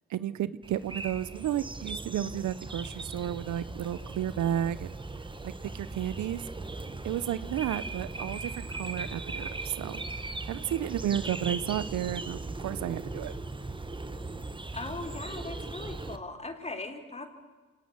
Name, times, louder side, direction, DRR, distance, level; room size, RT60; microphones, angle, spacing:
voice 1, 0.1-4.9 5.4-6.4 7.0-10.0 10.5-13.3, right 11 dB, 70° right, 17 dB, 0.9 m, -32 dB
sound 1, 0.6-16.2, right 3 dB, 15° right, 1.6 m, -38 dB
voice 2, 14.7-17.3, left 3 dB, 20° left, 6 dB, 4.1 m, -39 dB
25.5 x 19.5 x 8.2 m, 1.3 s
cardioid pair, 90°, 30 cm